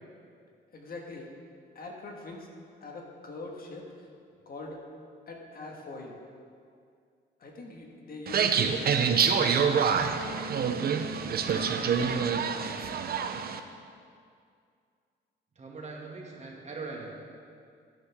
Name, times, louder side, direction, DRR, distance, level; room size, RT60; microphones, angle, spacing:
voice 1, 0.7-1.3 1.7-2.5 2.8-3.9 4.4-4.8 5.3-6.1 7.4-8.7 9.1-10.7, left 2 dB, 50° left, 0 dB, 1.7 m, -42 dB
sound 1, 8.3-13.6, right 6 dB, 50° right, 0.7 m, -26 dB
voice 2, 11.4-12.9 15.6-17.1, right 3 dB, 35° right, -2 dB, 2.1 m, -42 dB
12.5 x 10.0 x 3.6 m, 2.3 s
cardioid pair, 90°, 20 cm